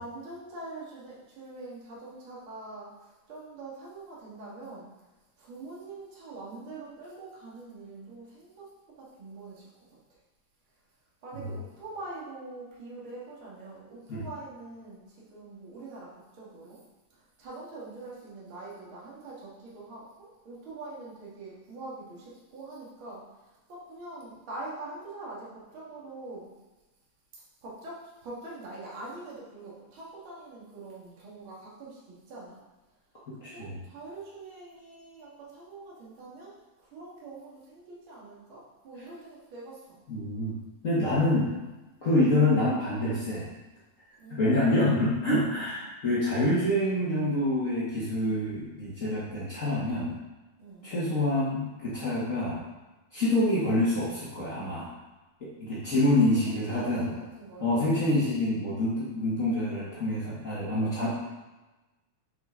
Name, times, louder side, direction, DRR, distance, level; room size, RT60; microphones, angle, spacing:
voice 1, 0.0-4.9 5.4-9.7 10.1-10.2 11.2-16.8 17.1-26.5 27.3-32.6 33.4-40.0 44.2-45.0 45.5-45.7 50.6-50.9 56.2-58.8, right 2 dB, 40° right, -6 dB, 2.4 m, -44 dB
voice 2, 33.4-33.8 40.1-40.6 40.8-41.5 42.0-43.5 44.3-50.2 50.8-52.6 53.1-54.9 55.4-57.1 57.6-61.1, left 1 dB, 65° left, -9 dB, 0.7 m, -26 dB
7.1 x 6.0 x 3.9 m, 1.1 s
omnidirectional pair, 4.0 m